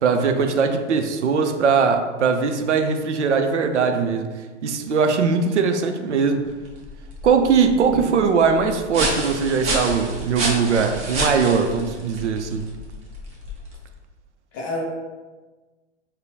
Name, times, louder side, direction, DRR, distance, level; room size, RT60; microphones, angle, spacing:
voice 1, 0.0-4.3 4.6-6.4 7.2-12.7, right 5 dB, 75° right, 6 dB, 0.5 m, -20 dB
sound 1, 6.5-13.9, right 1 dB, 20° right, 0.7 m, -30 dB
voice 2, 7.8-8.1 14.5-14.8, left 2 dB, 20° left, -2 dB, 0.3 m, -29 dB
5.0 x 2.1 x 2.7 m, 1.3 s
figure-of-eight pair, 105°, 36 cm